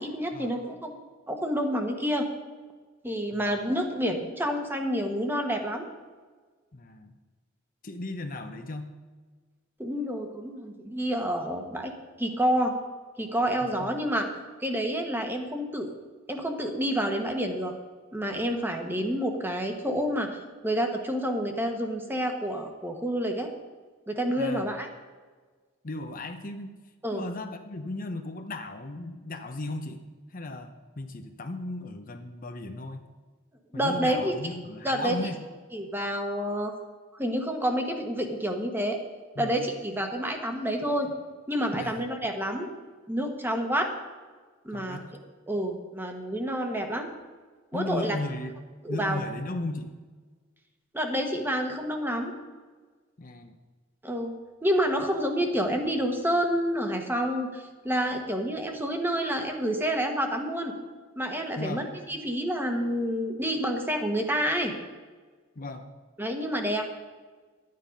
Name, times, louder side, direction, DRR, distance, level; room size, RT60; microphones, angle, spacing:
voice 1, 0.0-2.3 3.0-5.9 9.8-11.9 12.2-12.7 13.2-14.3 14.6-15.9 16.3-17.7 18.1-23.5 24.1-24.9 27.0-27.2 33.7-34.5 34.8-35.2 35.7-36.7 37.1-39.0 39.4-41.1 41.5-42.7 43.1-43.9 44.6-45.0 45.5-47.1 47.7-48.2 48.8-49.2 50.9-52.3 54.0-54.3 54.6-60.7 61.2-64.7 66.2-66.9, equal, 10° right, 4 dB, 1.2 m, -28 dB
voice 2, 6.7-7.1 7.8-8.9 13.6-13.9 24.4-24.7 25.8-26.7 27.1-30.0 30.3-33.1 33.7-35.4 39.4-39.5 41.8-42.1 44.7-45.2 47.7-48.6 48.9-50.0 53.2-53.6 61.6-61.9 65.6-65.9, left 2 dB, 45° left, 6 dB, 0.8 m, -36 dB
12.0 x 9.5 x 5.2 m, 1.4 s
head